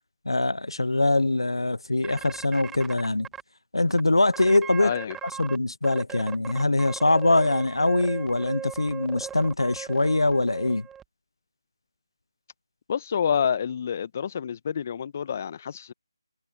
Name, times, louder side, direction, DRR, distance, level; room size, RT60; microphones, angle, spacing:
voice 1, 0.3-3.3 3.7-4.9 5.4-10.9, left 2 dB, 85° left, 0.6 m, -23 dB
sound 1, 2.0-3.4 3.9-4.0 4.3-5.6 5.8-11.0, right 8 dB, 5° right, 1.7 m, -39 dB
voice 2, 4.8-5.2 12.9-15.9, left 7 dB, 30° left, 1.2 m, -28 dB
figure-of-eight pair, 160°, 3 cm